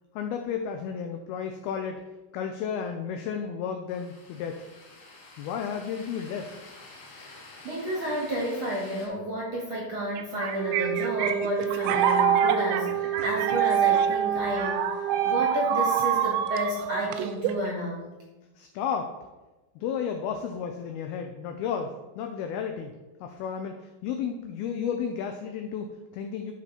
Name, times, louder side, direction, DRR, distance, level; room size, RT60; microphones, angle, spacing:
voice 1, 0.2-2.0 2.3-4.7 5.4-6.7 18.6-19.1 19.8-26.5, left 7 dB, 85° left, 5 dB, 2.2 m, -33 dB
sound 1, 3.9-9.1, left 2 dB, 50° left, 2.9 m, -49 dB
voice 2, 7.2-15.0 15.2-18.1, equal, 50° right, -3 dB, 2.1 m, -31 dB
sound 2, 10.2-17.7, right 9 dB, 85° right, 2.9 m, -26 dB
Wind instrument woodwind instrument, 10.5-15.3, right 11 dB, 30° left, 4.0 m, -31 dB
11.0 x 5.0 x 5.2 m, 1.1 s
omnidirectional pair, 5.2 m